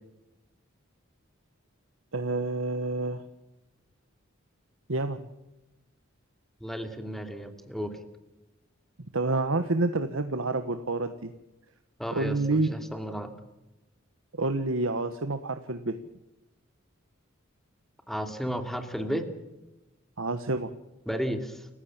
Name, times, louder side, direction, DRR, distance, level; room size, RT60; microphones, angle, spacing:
voice 1, 2.1-3.2 4.9-5.3 9.1-11.3 12.1-12.7 14.3-16.0 20.2-20.7, right 2 dB, 75° right, 9 dB, 1.4 m, -28 dB
voice 2, 6.6-7.9 12.0-13.3 18.1-19.3 21.1-21.7, equal, ahead, 6 dB, 2.7 m, -33 dB
29.0 x 15.5 x 7.4 m, 0.99 s
head